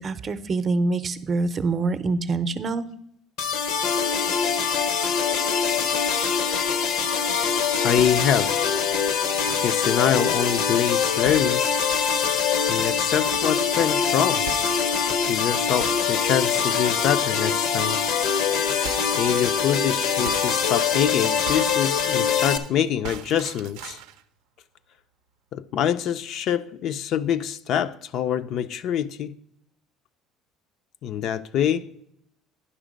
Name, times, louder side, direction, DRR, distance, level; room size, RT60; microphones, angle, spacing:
voice 1, 0.0-2.9, right 3 dB, 30° right, 0.6 m, -25 dB
sound 1, 3.4-22.6, left 7 dB, 75° left, 0.8 m, -23 dB
voice 2, 7.8-8.6 9.6-11.6 12.7-14.5 15.3-18.0 19.2-24.0 25.5-29.3 31.0-31.9, left 9 dB, 55° left, 0.4 m, -25 dB
sound 2, 8.0-11.0 11.3-14.1 14.5-15.4 15.8-17.6 18.0-18.1 18.4-22.7 23.0-24.2, right 10 dB, 90° right, 0.5 m, -40 dB
9.9 x 5.9 x 5.0 m
cardioid pair, 130°, 0 cm